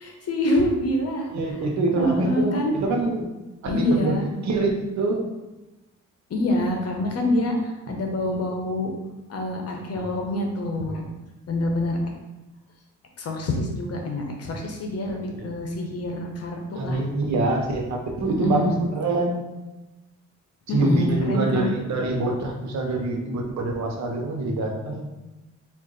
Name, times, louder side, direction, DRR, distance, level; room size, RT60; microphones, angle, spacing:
voice 1, 0.0-1.3 2.0-2.8 3.7-4.3 6.3-8.9 9.3-11.1 11.5-12.0 13.2-17.0 18.2-18.7 20.7-21.7, left 1 dB, 55° left, 2 dB, 0.9 m, -26 dB
voice 2, 1.3-3.3 3.6-5.3 15.1-15.5 16.7-19.4 20.7-25.1, right 2 dB, 65° right, 1 dB, 0.9 m, -25 dB
3.9 x 2.5 x 3.8 m, 1.1 s
cardioid pair, 90°, 30 cm